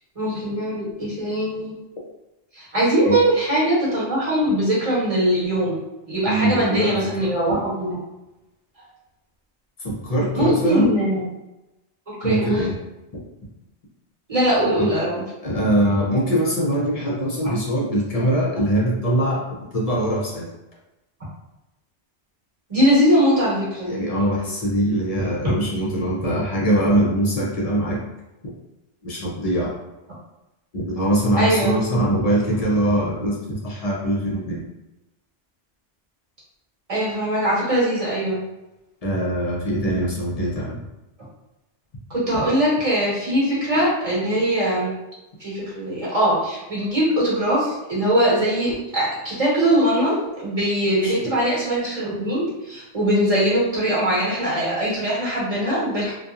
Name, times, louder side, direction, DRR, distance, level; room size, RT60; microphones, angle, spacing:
voice 1, 0.1-1.7 2.6-5.8 6.1-8.0 10.3-11.2 12.1-12.7 14.3-15.2 22.7-23.9 31.4-31.8 36.9-38.4 42.1-44.9 45.4-56.1, right 1 dB, 30° right, -8 dB, 1.1 m, -21 dB
voice 2, 6.3-7.3 9.8-10.9 12.2-12.7 13.1-13.2 14.8-14.9 15.4-19.4 19.7-20.5 23.9-28.0 29.0-29.7 30.7-34.6 39.0-40.8 42.3-42.4 51.0-51.1, right 1 dB, 45° left, -3 dB, 0.5 m, -22 dB
2.7 x 2.2 x 2.3 m, 0.97 s
omnidirectional pair, 1.2 m